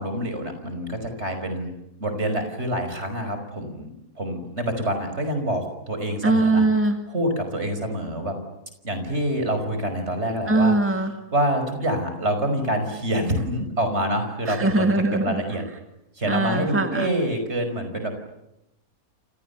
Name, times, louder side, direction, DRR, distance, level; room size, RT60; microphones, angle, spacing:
voice 1, 0.0-1.7 2.0-3.9 4.2-6.6 7.1-8.4 8.8-10.8 11.3-14.9 15.2-15.6 16.2-18.1, right 1 dB, 45° right, 7 dB, 5.7 m, -26 dB
voice 2, 6.2-7.0 10.5-11.1 14.5-15.4 16.3-17.1, right 2 dB, 10° right, 6 dB, 2.0 m, -21 dB
29.5 x 28.0 x 7.1 m, 0.88 s
omnidirectional pair, 1.6 m